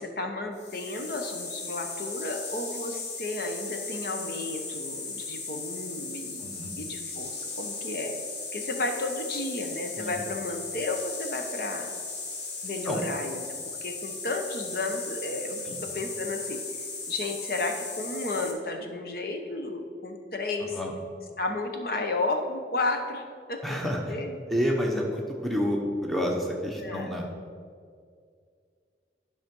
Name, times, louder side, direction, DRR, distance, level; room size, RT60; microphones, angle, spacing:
voice 1, 0.0-6.5 6.7-8.2 8.5-11.9 12.6-13.4 13.8-16.6 17.1-20.8 21.4-23.2 23.5-23.6 24.1-24.4 26.8-27.1, left 2 dB, 55° left, 4 dB, 0.9 m, -32 dB
sound 1, 0.6-18.5, left 3 dB, 70° left, 1.5 m, -37 dB
voice 2, 6.4-6.7 10.0-10.2 12.8-13.0 15.6-15.8 20.7-20.9 23.6-24.0 24.5-27.3, equal, ahead, -1 dB, 1.0 m, -29 dB
10.5 x 5.9 x 5.4 m, 2.1 s
head